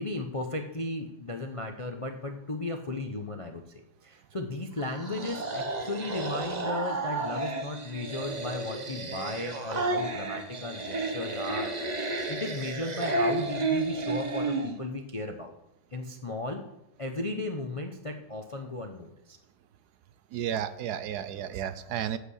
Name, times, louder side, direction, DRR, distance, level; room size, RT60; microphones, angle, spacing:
voice 1, 0.0-3.6 4.0-15.5 15.9-16.6 17.0-19.4, left 2 dB, 35° left, 4 dB, 0.5 m, -35 dB
sound 1, 4.8-14.8, right 2 dB, 30° right, 1.0 m, -32 dB
voice 2, 20.3-22.2, right 9 dB, 75° right, 13 dB, 1.2 m, -32 dB
8.4 x 8.0 x 6.4 m, 0.89 s
omnidirectional pair, 1.8 m